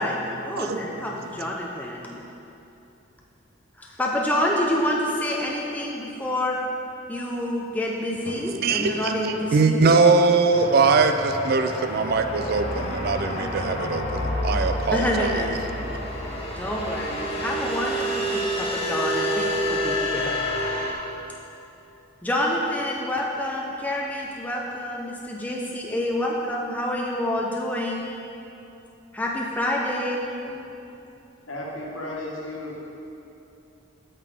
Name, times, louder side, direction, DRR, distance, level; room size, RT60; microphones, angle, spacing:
voice 1, 0.0-2.2 3.8-6.6 7.1-9.9 14.9-15.6 16.6-20.3 22.2-28.1 29.1-30.2, left 1 dB, 10° left, -2 dB, 0.5 m, -27 dB
voice 2, 8.3-15.4, right 4 dB, 45° right, 7 dB, 0.3 m, -22 dB
sound 1, 10.5-20.9, equal, 30° left, 1.1 m, -28 dB
voice 3, 31.5-32.8, left 1 dB, 65° left, -4 dB, 1.4 m, -34 dB
8.4 x 6.7 x 3.6 m, 2.9 s
head